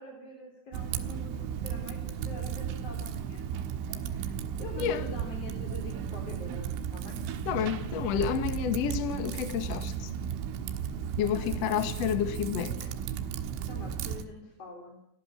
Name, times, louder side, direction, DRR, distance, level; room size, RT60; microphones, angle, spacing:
voice 1, 0.0-7.2 11.2-11.5 13.6-15.1, left 1 dB, 35° left, 4.1 m, -45 dB
Typing, 0.7-14.2, right 8 dB, 85° right, 4.0 m, -35 dB
voice 2, 7.4-10.1 11.2-12.7, left 8 dB, 65° left, 1.6 m, -30 dB
29.5 x 14.5 x 7.5 m
omnidirectional pair, 5.6 m